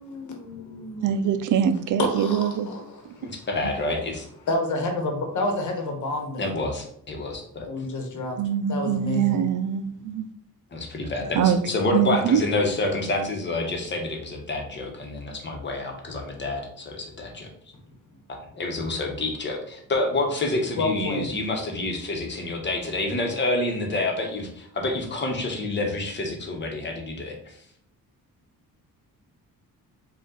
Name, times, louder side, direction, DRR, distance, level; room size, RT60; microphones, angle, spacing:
voice 1, 0.0-1.4 2.0-3.5 4.5-6.5 7.6-9.4 20.8-21.3, left 2 dB, 60° left, 3 dB, 1.1 m, -30 dB
voice 2, 1.0-2.7 8.4-10.2 11.4-11.6 11.9-12.4, right 9 dB, 60° right, 10 dB, 0.4 m, -23 dB
voice 3, 3.2-4.3 6.4-7.7 10.7-17.5 18.5-27.6, left 2 dB, 30° left, 1 dB, 1.1 m, -28 dB
5.3 x 2.5 x 3.9 m, 0.67 s
cardioid pair, 135°, 34 cm